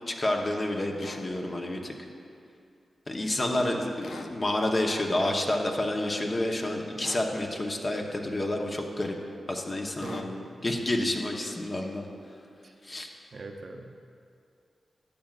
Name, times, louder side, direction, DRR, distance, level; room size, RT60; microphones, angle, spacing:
voice 1, 0.1-1.9 3.1-9.2 9.5-12.1 12.8-13.1, left 1 dB, 40° left, 2 dB, 1.0 m, -29 dB
sound 1, 1.0-1.3 4.0-4.4 7.0-7.3 10.0-10.3, left 4 dB, 80° left, 0.4 m, -44 dB
voice 2, 3.4-3.8 10.0-10.3 12.6-12.7 13.3-13.9, right 3 dB, 60° right, 4 dB, 0.6 m, -41 dB
12.0 x 7.5 x 2.5 m, 2.4 s
cardioid pair, 45°, 0 cm